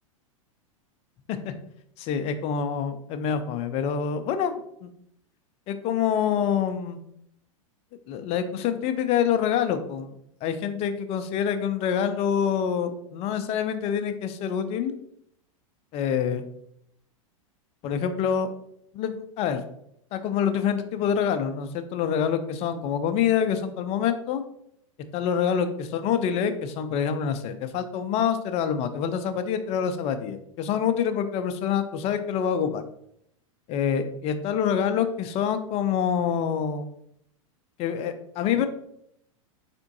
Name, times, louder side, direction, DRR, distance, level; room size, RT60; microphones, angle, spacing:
voice 1, 2.0-4.9 5.7-7.0 8.1-10.2 10.4-14.9 15.9-16.4 17.8-18.5 18.9-19.6 20.1-24.4 25.1-32.8 33.7-36.9 37.8-38.7, left 8 dB, 35° left, 9 dB, 0.4 m, -26 dB
4.3 x 3.5 x 2.7 m, 0.74 s
hypercardioid pair, 105°, 17 cm